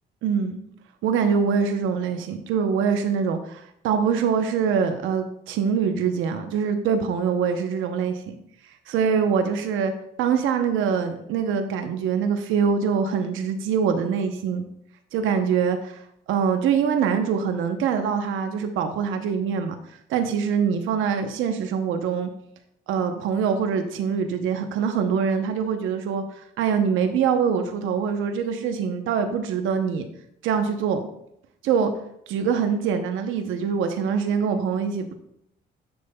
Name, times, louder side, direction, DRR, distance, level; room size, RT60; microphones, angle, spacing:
voice 1, 0.2-0.6 1.0-8.3 8.9-9.9 10.2-14.6 15.1-19.8 20.1-22.3 22.9-26.2 26.6-30.1 30.4-31.0 31.6-31.9 32.3-35.1, right 6 dB, 85° right, 6 dB, 0.7 m, -24 dB
10.0 x 7.0 x 2.2 m, 0.75 s
cardioid pair, 90°, 20 cm